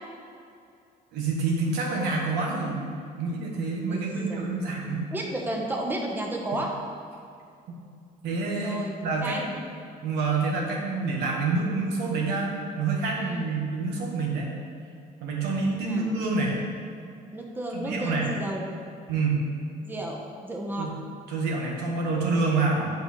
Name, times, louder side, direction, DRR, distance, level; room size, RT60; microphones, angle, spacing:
voice 1, 1.1-2.9 3.2-5.1 7.7-7.8 8.2-9.3 10.0-14.5 15.2-16.6 17.7-18.3 19.1-19.4 20.8-20.9 21.3-22.9, right 3 dB, 85° right, -2 dB, 1.3 m, -27 dB
voice 2, 3.9-4.6 5.1-6.7 8.5-9.5 13.1-13.5 15.7-16.1 17.3-18.6 19.8-20.9, right 1 dB, 10° right, 0 dB, 0.8 m, -33 dB
7.8 x 5.2 x 3.0 m, 2.4 s
cardioid pair, 110°, 17 cm